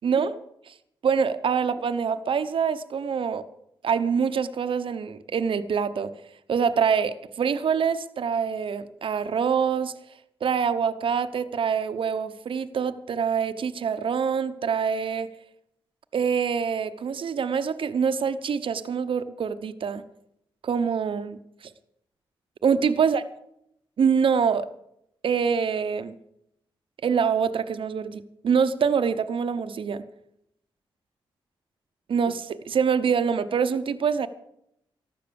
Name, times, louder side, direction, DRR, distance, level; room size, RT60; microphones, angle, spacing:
voice 1, 0.0-0.3 0.7-0.8 1.0-3.4 3.8-6.1 6.5-9.9 10.4-15.3 16.1-20.0 20.6-21.7 22.6-23.2 24.0-24.7 25.2-26.1 27.0-30.0 32.1-34.3, right 6 dB, 65° right, 10 dB, 0.9 m, -25 dB
14.5 x 11.5 x 7.0 m, 0.78 s
cardioid pair, 60°, 9 cm